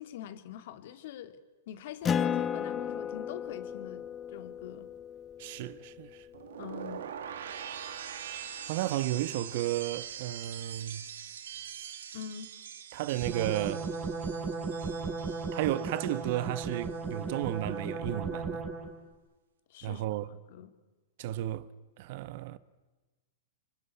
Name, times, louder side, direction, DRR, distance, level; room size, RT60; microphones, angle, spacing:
voice 1, 0.0-1.4 1.7-4.9 6.6-7.0 12.1-12.5 19.7-20.0 20.3-20.7, left 10 dB, 60° left, 2.7 m, -44 dB
Acoustic guitar, 2.0-7.0, left 7 dB, 20° left, 1.1 m, -35 dB
voice 2, 5.4-6.2 8.7-11.1 12.9-13.9 15.5-18.6 19.8-20.3 21.2-21.7 22.0-22.6, right 14 dB, 55° right, 1.3 m, -33 dB
sound 1, 6.3-16.4 16.7-17.2, right 8 dB, 75° right, 2.4 m, -43 dB
sound 2, 13.2-19.0, right 4 dB, 20° right, 5.3 m, -36 dB
27.0 x 24.5 x 8.6 m
hypercardioid pair, 125°, 0 cm